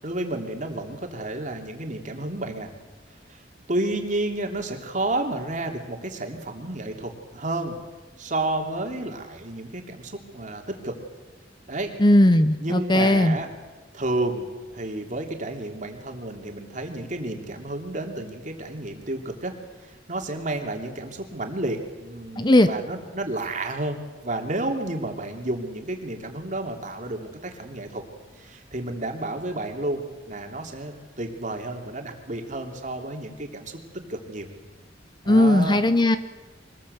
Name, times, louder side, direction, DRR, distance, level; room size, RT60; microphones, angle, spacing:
voice 1, 0.0-2.7 3.3-3.4 3.7-7.8 8.2-11.0 11.7-11.9 12.6-13.5 13.9-14.5 14.7-19.5 19.8-28.0 28.4-33.8 34.1-34.5 35.2-35.8, right 2 dB, 45° right, 3 dB, 3.1 m, -31 dB
voice 2, 12.0-13.4 22.4-22.7 35.3-36.2, left 1 dB, 25° left, 11 dB, 0.8 m, -17 dB
24.5 x 20.0 x 8.2 m, 1.2 s
head